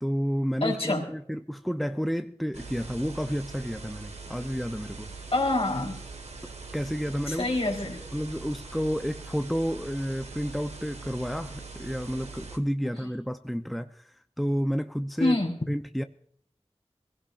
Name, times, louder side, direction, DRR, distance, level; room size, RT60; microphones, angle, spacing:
voice 1, 0.0-5.1 6.7-7.5 8.1-14.1 14.4-15.4 15.7-16.0, equal, ahead, 0.7 m, -30 dB
voice 2, 0.6-1.0 5.3-6.0 7.3-8.0 13.0-13.1 15.2-15.6, left 2 dB, 65° left, 4.0 m, -26 dB
sound 1, 2.5-12.6, right 4 dB, 85° right, 1.6 m, -42 dB
23.0 x 16.5 x 2.6 m
wide cardioid pair, 60°, 11 cm